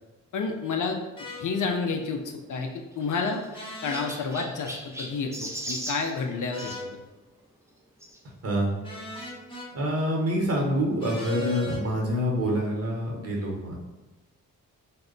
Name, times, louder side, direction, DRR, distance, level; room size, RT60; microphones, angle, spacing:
voice 1, 0.3-1.0 1.4-2.2 2.5-3.4 3.8-6.7, left 4 dB, 60° left, 3 dB, 0.5 m, -29 dB
sound 1, 1.2-1.4 3.5-4.1 6.5-6.9 8.8-9.7 11.0-11.8, left 2 dB, 15° left, 1.0 m, -38 dB
Chirp tweet, 2.5-6.8 8.0-8.2 8.9-9.0 9.2-9.3 10.6-10.7, right 1 dB, 10° right, 0.4 m, -39 dB
voice 2, 9.7-13.8, equal, 40° right, -1 dB, 1.0 m, -26 dB
2.1 x 2.0 x 3.7 m, 1.1 s
cardioid pair, 55°, 35 cm